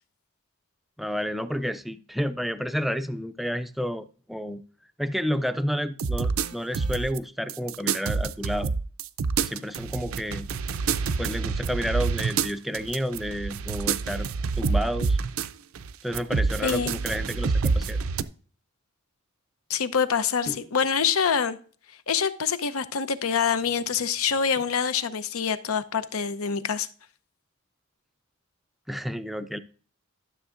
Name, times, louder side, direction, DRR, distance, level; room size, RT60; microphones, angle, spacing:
voice 1, 1.0-4.6 5.0-8.7 9.4-10.5 11.2-14.3 14.6-15.2 16.0-18.0 28.9-29.6, equal, ahead, 0.4 m, -30 dB
sound 1, 6.0-7.2 7.5-15.5 15.7-18.2, right 5 dB, 70° right, 0.5 m, -27 dB
voice 2, 16.6-16.9 19.7-21.6 22.1-26.9, left 6 dB, 85° left, 0.7 m, -25 dB
sound 2, 20.4-20.9 23.5-24.8 25.4-25.5, left 2 dB, 55° left, 1.1 m, -44 dB
12.5 x 7.1 x 2.5 m
head